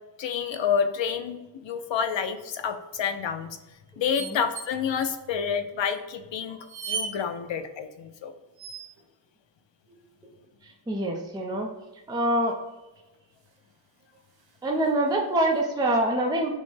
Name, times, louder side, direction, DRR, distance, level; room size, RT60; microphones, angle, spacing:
voice 1, 0.2-3.6 4.0-8.3, left 7 dB, 85° left, 8 dB, 0.6 m, -29 dB
sound 1, 2.4-2.7 4.1-4.7 5.0-5.1 5.9-6.0 6.6-7.1 8.6-9.1 11.1-11.6 13.1-13.2 13.4-13.6 14.3-15.1 15.5-15.6, right 5 dB, 60° right, 0.8 m, -37 dB
voice 2, 10.9-11.7 12.1-12.6 14.6-16.6, right 1 dB, 10° right, 0 dB, 0.5 m, -25 dB
6.2 x 2.1 x 3.3 m, 1.1 s
wide cardioid pair, 175°, 44 cm